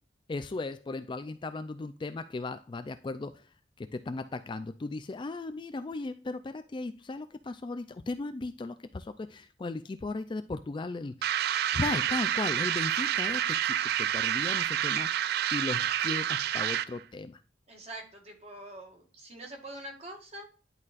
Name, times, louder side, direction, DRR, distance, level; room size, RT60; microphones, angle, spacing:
voice 1, 0.3-3.4 3.8-11.3 11.7-15.1 15.5-17.4, left 3 dB, 25° left, 11 dB, 0.3 m, -36 dB
sound 1, 11.2-17.0, right 10 dB, 55° right, 0.3 m, -29 dB
voice 2, 17.7-20.5, right 1 dB, 35° right, 1 dB, 1.8 m, -44 dB
10.5 x 4.1 x 2.4 m, 0.36 s
head